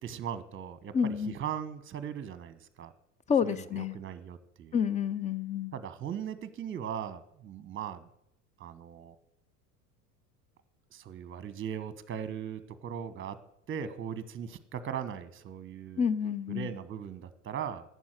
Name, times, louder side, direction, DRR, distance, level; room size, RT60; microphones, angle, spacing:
voice 1, 0.0-2.9 3.4-4.8 5.7-8.1 8.6-9.1 10.9-13.4 13.7-16.1 16.5-17.8, right 8 dB, 25° right, 14 dB, 1.2 m, -39 dB
voice 2, 0.9-1.4 3.3-4.0 4.7-5.7 16.0-16.7, left 7 dB, 15° left, 16 dB, 0.5 m, -29 dB
11.5 x 8.4 x 6.4 m, 0.75 s
figure-of-eight pair, 80°, 47 cm